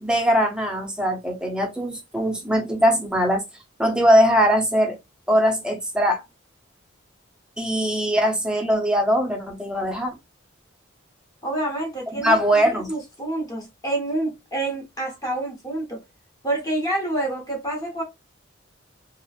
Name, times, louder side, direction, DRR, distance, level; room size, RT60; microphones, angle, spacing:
voice 1, 0.0-3.4 3.8-5.0 5.3-6.2 7.6-10.2 12.2-12.9, equal, 5° right, 0.6 m, -21 dB
voice 2, 11.4-16.0 16.4-18.0, right 1 dB, 20° left, 0.9 m, -28 dB
2.9 x 2.4 x 2.4 m
head